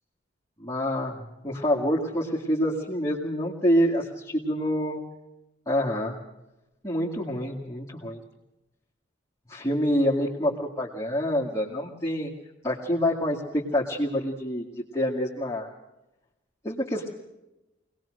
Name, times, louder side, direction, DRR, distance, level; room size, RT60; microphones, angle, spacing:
voice 1, 0.6-5.0 5.7-6.2 6.8-8.2 9.5-12.3 12.6-15.7 16.6-17.1, equal, 15° left, -6 dB, 2.2 m, -27 dB
24.5 x 19.0 x 6.5 m, 0.97 s
head